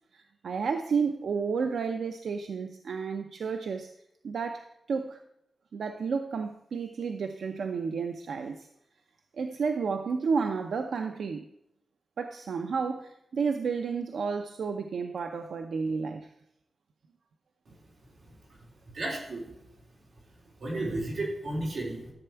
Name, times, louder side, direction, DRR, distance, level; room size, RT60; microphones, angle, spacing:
voice 1, 0.1-3.9 4.2-5.2 5.7-8.7 9.4-11.4 12.2-16.3, right 5 dB, 90° right, 0.6 m, -31 dB
voice 2, 18.9-19.5 20.6-22.1, right 2 dB, 65° right, 3.7 m, -33 dB
13.5 x 7.7 x 4.5 m
wide cardioid pair, 180°, 0 cm